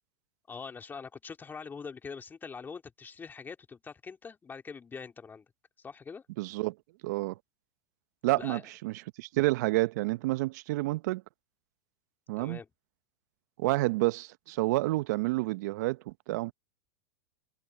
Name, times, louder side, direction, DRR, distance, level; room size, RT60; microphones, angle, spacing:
voice 1, 0.5-5.4 5.8-6.2 8.3-8.7 12.4-12.7, left 5 dB, 20° left, 2.8 m, -43 dB
voice 2, 6.4-6.7 7.0-7.3 8.2-11.2 12.3-12.6 13.6-16.5, right 20 dB, 65° right, 0.8 m, -29 dB
hypercardioid pair, 105°, 10 cm